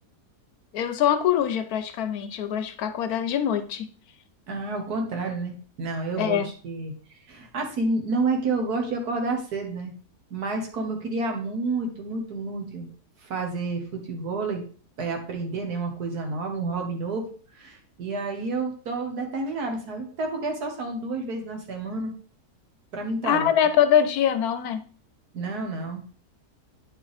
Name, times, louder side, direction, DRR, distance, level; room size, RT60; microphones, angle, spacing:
voice 1, 0.7-3.9 6.2-6.5 23.2-24.8, left 9 dB, 70° left, 10 dB, 1.1 m, -23 dB
voice 2, 4.5-6.9 7.3-9.9 10.3-12.9 13.2-14.6 15.0-17.3 17.6-22.1 22.9-23.5 25.3-26.0, right 3 dB, 75° right, 3 dB, 1.9 m, -29 dB
9.0 x 4.7 x 3.4 m, 0.42 s
omnidirectional pair, 1.7 m